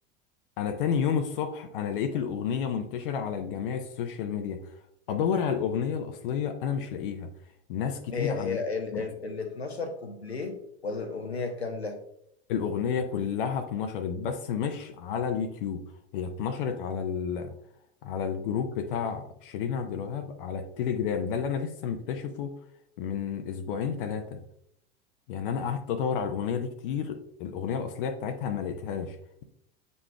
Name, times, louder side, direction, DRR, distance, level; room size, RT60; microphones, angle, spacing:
voice 1, 0.6-4.8 5.1-7.3 7.7-8.6 8.9-9.0 12.5-15.8 16.1-17.5 18.0-22.5 23.0-24.4 25.3-29.2, left 7 dB, 60° left, 6 dB, 0.8 m, -31 dB
voice 2, 8.1-12.0, left 4 dB, 85° left, 5 dB, 1.0 m, -33 dB
8.1 x 5.4 x 2.3 m, 0.72 s
figure-of-eight pair, 80°, 31 cm